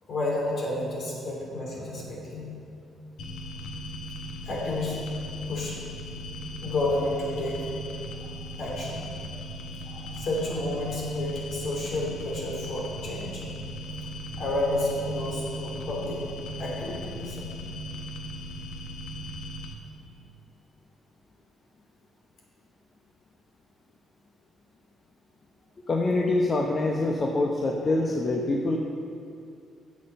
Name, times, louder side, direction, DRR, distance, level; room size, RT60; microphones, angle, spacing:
voice 1, 0.1-2.5 4.4-5.0 5.5-5.8 6.6-7.7 8.2-8.3 8.6-9.1 9.8-13.4 14.4-16.2 16.6-17.5, left 1 dB, 60° left, -2 dB, 2.9 m, -30 dB
sound 1, 3.2-19.7, equal, 80° left, 1.2 m, -38 dB
voice 2, 9.4-9.9 25.9-28.8, left 2 dB, 35° left, 0 dB, 0.9 m, -26 dB
8.4 x 7.5 x 6.6 m, 2.5 s
cardioid pair, 90°, 0 cm